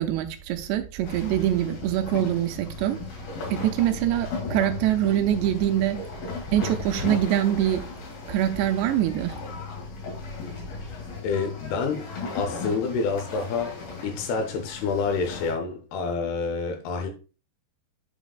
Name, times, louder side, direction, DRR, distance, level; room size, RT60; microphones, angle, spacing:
voice 1, 0.0-3.0 3.5-6.0 6.5-7.8 8.3-9.3, right 11 dB, 80° right, 2.7 m, -24 dB
sound 1, 1.0-15.5, left 4 dB, 60° left, 4.1 m, -36 dB
voice 2, 10.9-12.0 12.3-13.8 14.0-17.1, left 4 dB, 75° left, 2.5 m, -28 dB
8.8 x 5.1 x 2.3 m
omnidirectional pair, 5.1 m